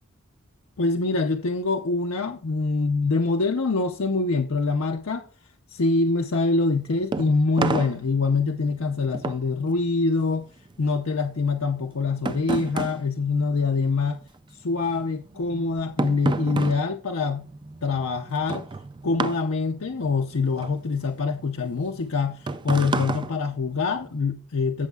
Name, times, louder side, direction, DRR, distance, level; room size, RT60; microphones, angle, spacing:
voice 1, 0.8-5.3 5.7-10.5 10.8-14.2 14.6-17.5 17.8-18.7 19.0-24.9, left 3 dB, 75° left, 0.7 m, -25 dB
sound 1, 6.6-14.3 14.5-24.2, right 3 dB, 20° right, 0.3 m, -32 dB
16.0 x 6.4 x 2.3 m
head